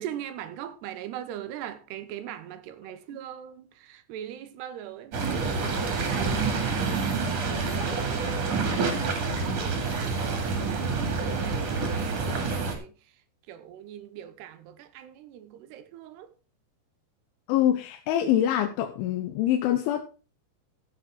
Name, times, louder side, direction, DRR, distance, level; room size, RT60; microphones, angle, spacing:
voice 1, 0.0-7.0 7.5-8.6 9.2-12.9 13.5-16.3, right 11 dB, 75° right, 2.8 m, -41 dB
sound 1, 5.1-12.8, right 4 dB, 45° right, 2.9 m, -28 dB
voice 2, 17.5-20.1, left 11 dB, 90° left, 3.4 m, -25 dB
14.5 x 7.5 x 3.7 m
omnidirectional pair, 5.3 m